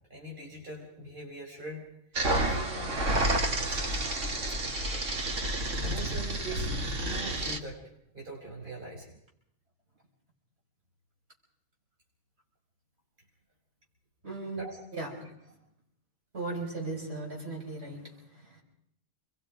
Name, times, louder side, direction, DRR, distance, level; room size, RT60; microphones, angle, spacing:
voice 1, 0.1-1.9 2.3-4.1 4.5-4.6 4.9-5.1 5.8-7.8 8.1-9.1 14.6-14.8, right 1 dB, 40° right, -2 dB, 5.2 m, -42 dB
sound 1, 2.2-7.6, right 1 dB, 90° right, 2.4 m, -30 dB
voice 2, 14.2-15.6 16.3-18.6, right 2 dB, 60° right, -1 dB, 6.4 m, -38 dB
27.5 x 22.5 x 5.2 m, 0.74 s
omnidirectional pair, 1.3 m